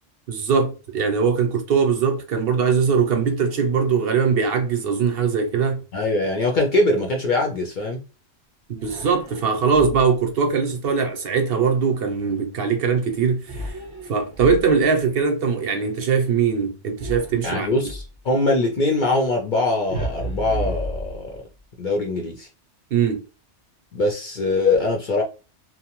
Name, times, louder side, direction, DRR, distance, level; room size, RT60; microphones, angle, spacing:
voice 1, 0.3-5.8 8.7-13.8 14.1-17.8 22.9-23.2, right 6 dB, 65° right, 0.7 m, -21 dB
voice 2, 5.9-8.0 17.4-21.4 21.8-22.5 23.9-25.2, left 2 dB, 60° left, 0.5 m, -22 dB
sound 1, 8.8-10.3 13.5-15.0 17.0-18.2 19.9-21.6, right 1 dB, 5° left, 0.8 m, -33 dB
2.8 x 2.0 x 2.9 m
omnidirectional pair, 1.2 m